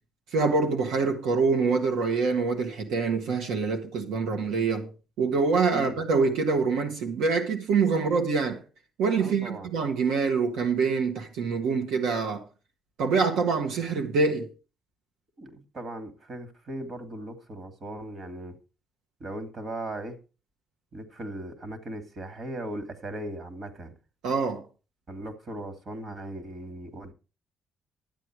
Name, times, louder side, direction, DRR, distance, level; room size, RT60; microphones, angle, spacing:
voice 1, 0.3-4.9 5.2-8.6 9.0-12.4 13.0-14.5 24.2-24.6, right 4 dB, 90° right, 1.6 m, -25 dB
voice 2, 5.7-6.0 9.2-9.7 15.4-18.6 19.2-20.2 20.9-23.9 25.1-27.1, right 1 dB, 45° right, 2.6 m, -38 dB
12.0 x 8.5 x 4.8 m
cardioid pair, 90°, 0 cm